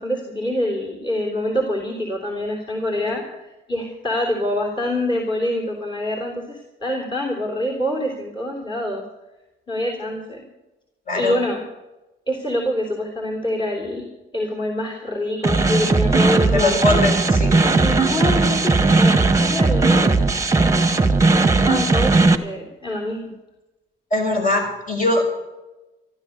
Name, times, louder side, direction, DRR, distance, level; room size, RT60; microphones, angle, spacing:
voice 1, 0.0-9.0 9.7-10.5 11.1-11.6 12.3-17.0 17.8-20.2 21.6-23.3, left 1 dB, 25° left, -1 dB, 3.4 m, -25 dB
sound 1, 15.4-22.4, right 3 dB, 15° right, 1.3 m, -17 dB
voice 2, 16.5-17.6 24.1-25.3, left 2 dB, 40° left, 2 dB, 6.0 m, -21 dB
13.5 x 13.0 x 6.6 m, 1.0 s
cardioid pair, 90°, 20 cm